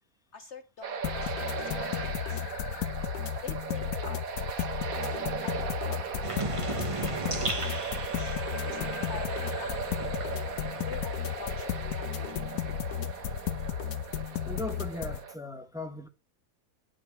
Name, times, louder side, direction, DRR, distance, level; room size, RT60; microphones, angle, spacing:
voice 1, 0.3-2.4 3.1-7.2 8.0-10.1 10.3-10.5 10.9-12.6, left 5 dB, 55° left, 1.1 m, -47 dB
sound 1, 0.8-15.3, right 6 dB, 65° right, 1.6 m, -37 dB
sound 2, 1.0-15.2, left 10 dB, 80° left, 1.4 m, -34 dB
sound 3, 6.2-11.6 11.9-13.6, right 3 dB, 20° right, 1.4 m, -38 dB
voice 2, 14.4-16.1, left 1 dB, ahead, 1.3 m, -38 dB
11.0 x 6.0 x 5.7 m
omnidirectional pair, 1.6 m